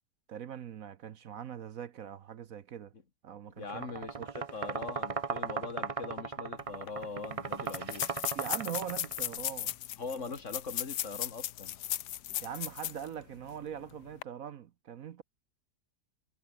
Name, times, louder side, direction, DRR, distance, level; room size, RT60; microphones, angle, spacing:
voice 1, 0.3-2.9 3.2-4.3 8.3-9.7 12.4-15.2, right 8 dB, 60° right, 1.2 m, -42 dB
voice 2, 3.5-8.1 10.0-11.8, left 4 dB, 45° left, 2.4 m, -41 dB
sound 1, 3.6-9.4, right 5 dB, 40° right, 0.4 m, -37 dB
sound 2, 6.6-6.7 6.9-7.0 7.6-13.1 13.5-13.6 14.1-14.2, left 13 dB, 90° left, 1.4 m, -36 dB
omnidirectional pair, 1.8 m